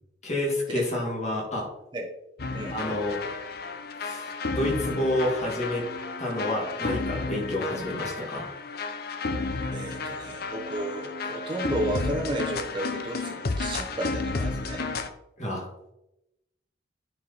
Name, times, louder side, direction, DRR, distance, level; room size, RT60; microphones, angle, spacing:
voice 1, 0.2-1.7 2.7-3.2 4.0-5.9 6.2-8.5 15.4-15.6, left 1 dB, 40° left, -2 dB, 2.7 m, -29 dB
sound 1, 2.4-15.1, left 3 dB, 60° left, 0.7 m, -32 dB
voice 2, 9.7-14.8, right 1 dB, 25° right, 0 dB, 0.8 m, -33 dB
9.4 x 4.5 x 4.3 m, 0.87 s
head